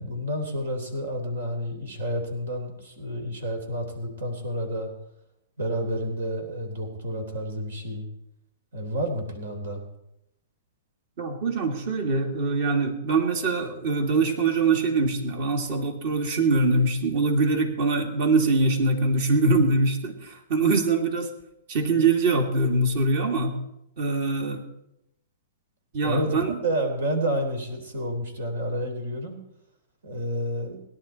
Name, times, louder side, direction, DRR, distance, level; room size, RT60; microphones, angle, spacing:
voice 1, 0.0-4.9 5.6-8.1 8.7-9.8 26.0-26.3 26.6-29.4 30.0-30.8, equal, 80° right, 5 dB, 3.6 m, -30 dB
voice 2, 11.2-21.3 21.7-23.6 24.0-24.6 25.9-26.6, right 3 dB, 55° right, 4 dB, 2.6 m, -23 dB
17.5 x 11.0 x 4.5 m, 0.82 s
hypercardioid pair, 135°, 0 cm